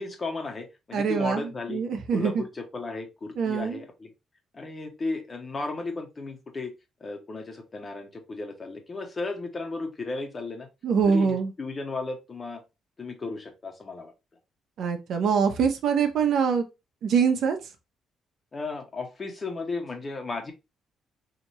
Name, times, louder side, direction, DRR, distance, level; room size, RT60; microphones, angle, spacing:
voice 1, 0.0-1.8 2.1-4.1 4.5-6.7 7.0-10.7 11.1-12.6 13.0-14.1 18.5-20.5, left 3 dB, 35° left, 1.1 m, -34 dB
voice 2, 0.9-1.4 1.7-2.3 3.4-3.8 10.8-11.5 14.8-16.6 17.0-17.6, right 6 dB, 70° right, 0.8 m, -24 dB
4.2 x 2.9 x 3.0 m
cardioid pair, 90°, 0 cm